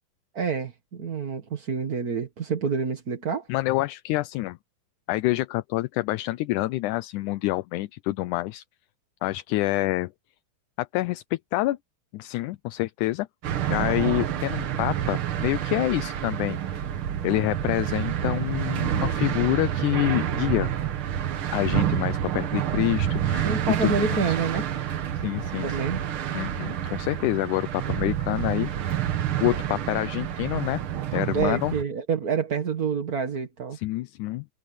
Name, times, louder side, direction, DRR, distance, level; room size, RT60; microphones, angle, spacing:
voice 1, 0.3-3.5 23.4-24.7 25.6-26.0 31.3-33.8, right 5 dB, 35° right, 1.6 m, -28 dB
voice 2, 3.5-4.6 5.1-8.6 9.2-10.1 10.8-11.8 12.1-13.3 13.7-16.8 17.2-20.7 21.5-23.5 23.8-24.4 25.1-25.8 26.3-28.9 29.4-30.8 31.1-31.7 33.7-34.5, left 18 dB, 80° left, 2.1 m, -27 dB
sound 1, 13.4-31.8, right 10 dB, 55° right, 1.6 m, -28 dB
omnidirectional pair, 3.6 m